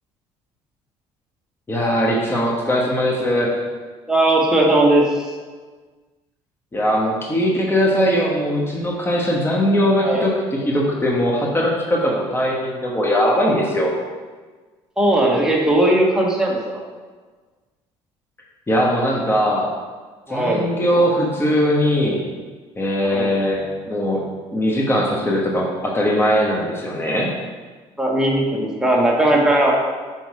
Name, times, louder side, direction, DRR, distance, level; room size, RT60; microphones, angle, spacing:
voice 1, 1.7-3.6 6.7-13.9 18.7-19.7 20.3-22.2 22.8-24.2 24.5-27.3, equal, 20° left, -2 dB, 1.2 m, -20 dB
voice 2, 4.1-5.0 10.0-10.3 15.0-16.8 20.3-20.7 23.0-23.3 28.0-29.7, right 1 dB, 5° right, -3 dB, 1.5 m, -18 dB
5.9 x 4.0 x 4.7 m, 1.4 s
supercardioid pair, 80°, 13 cm